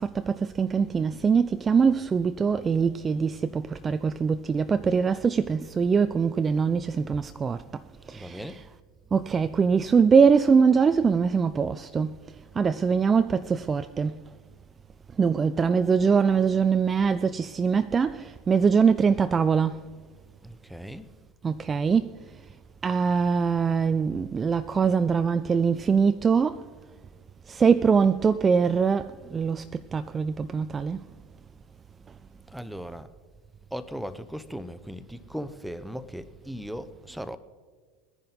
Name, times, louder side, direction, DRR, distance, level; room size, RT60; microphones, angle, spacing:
voice 1, 0.0-7.6 8.1-8.6 9.1-12.2 12.6-14.2 15.2-19.8 21.4-22.1 22.8-26.6 27.5-31.0, right 6 dB, 25° right, 0.3 m, -23 dB
voice 2, 8.1-8.6 20.4-21.1 32.5-33.1 33.7-37.4, equal, ahead, 0.7 m, -38 dB
20.5 x 10.5 x 4.1 m
figure-of-eight pair, 75°, 0 cm